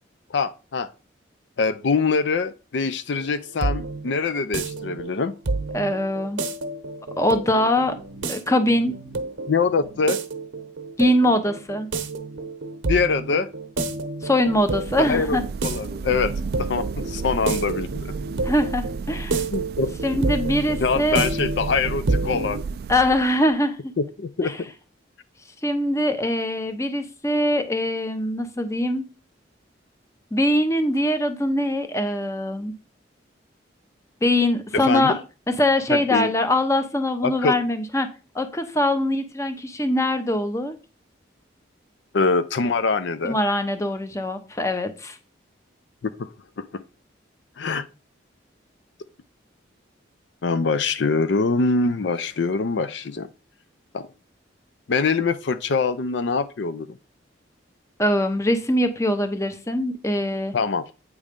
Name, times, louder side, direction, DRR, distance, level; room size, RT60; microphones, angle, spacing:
voice 1, 0.3-0.9 1.6-5.3 9.5-10.2 12.9-13.5 15.0-16.3 16.6-18.1 19.5-19.9 20.8-22.6 24.0-24.5 34.7-35.2 35.9-36.3 37.2-37.6 42.1-43.4 46.0-46.3 46.6-46.8 47.6-47.8 50.4-53.3 53.9-54.1 54.9-57.0 60.5-60.9, left 4 dB, 65° left, 0.5 m, -24 dB
sound 1, 3.2-22.6, right 3 dB, 80° right, 0.8 m, -30 dB
voice 2, 5.7-6.4 7.2-8.0 8.3-9.0 11.0-11.9 14.2-15.4 18.4-19.4 20.0-21.2 22.9-23.9 24.4-24.6 25.6-29.1 30.3-32.7 34.2-35.2 35.5-38.1 38.3-40.7 43.2-45.2 58.0-60.5, left 1 dB, 15° left, 0.7 m, -22 dB
sound 2, 14.4-23.5, right 4 dB, 55° right, 0.3 m, -33 dB
8.4 x 3.2 x 5.1 m
head